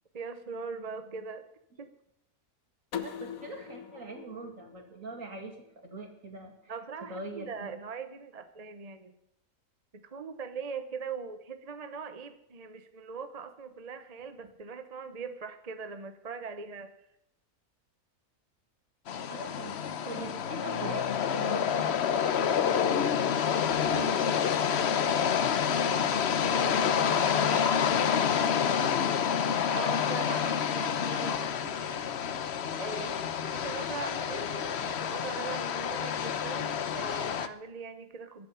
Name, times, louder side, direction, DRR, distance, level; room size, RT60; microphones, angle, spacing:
voice 1, 0.1-1.5 1.8-1.9 6.7-9.2 9.9-16.9 29.7-33.1 33.4-38.5, right 5 dB, 30° right, 9 dB, 0.8 m, -41 dB
sound 1, 2.9-5.7, left 8 dB, 70° left, 1.5 m, -42 dB
voice 2, 3.0-6.7 7.1-7.7 19.3-22.0 22.4-25.2 25.8-28.5 30.1-30.2 32.9-33.2, right 2 dB, 60° right, 4 dB, 2.6 m, -43 dB
sound 2, 19.1-37.5, left 8 dB, 55° left, 0.9 m, -28 dB
15.0 x 11.0 x 5.7 m, 0.80 s
omnidirectional pair, 1.6 m